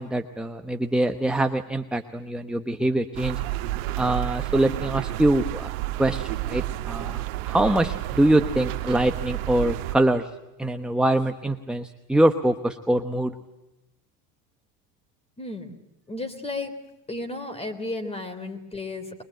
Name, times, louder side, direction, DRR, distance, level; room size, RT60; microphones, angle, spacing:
voice 1, 0.0-3.4 4.0-5.7 6.0-10.3 10.6-13.3, right 1 dB, ahead, 7 dB, 0.9 m, -24 dB
sound 1, 3.1-10.0, right 16 dB, 75° right, 1.3 m, -30 dB
voice 2, 15.4-15.7 16.1-16.7 17.1-19.2, left 2 dB, 15° left, 11 dB, 3.3 m, -33 dB
23.0 x 22.0 x 9.0 m, 0.95 s
supercardioid pair, 115°, 40 cm